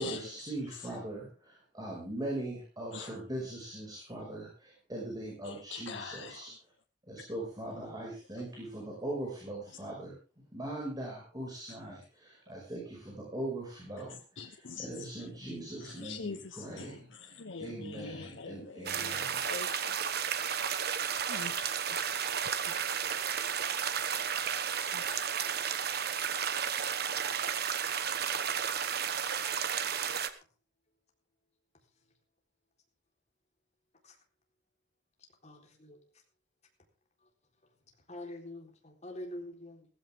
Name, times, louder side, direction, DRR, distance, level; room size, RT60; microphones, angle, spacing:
voice 1, 0.0-6.5 7.0-10.2 10.5-14.2 14.4-17.3 17.6-19.5, right 1 dB, 20° right, -2 dB, 5.7 m, -40 dB
voice 2, 5.4-6.5 14.4-15.3 15.8-20.0 21.3-22.4 24.8-25.2, left 4 dB, 90° left, 5 dB, 1.0 m, -44 dB
sound 1, 18.9-30.3, right 8 dB, 60° right, 1.2 m, -33 dB
voice 3, 35.4-36.0 38.1-39.9, left 1 dB, 40° left, 1 dB, 3.9 m, -45 dB
16.0 x 15.5 x 3.7 m, 0.34 s
head